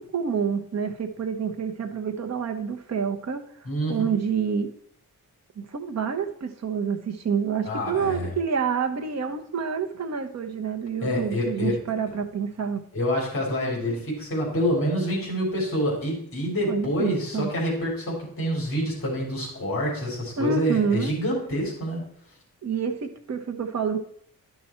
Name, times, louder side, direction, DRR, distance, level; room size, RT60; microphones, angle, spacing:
voice 1, 0.0-3.4 3.9-4.7 5.6-12.8 16.7-17.5 20.4-21.1 22.6-24.0, right 6 dB, 50° right, 5 dB, 1.0 m, -28 dB
voice 2, 3.6-4.0 7.6-8.3 11.0-11.8 12.9-22.0, equal, 40° left, -3 dB, 3.4 m, -27 dB
11.0 x 5.8 x 4.4 m, 0.65 s
wide cardioid pair, 140°, 34 cm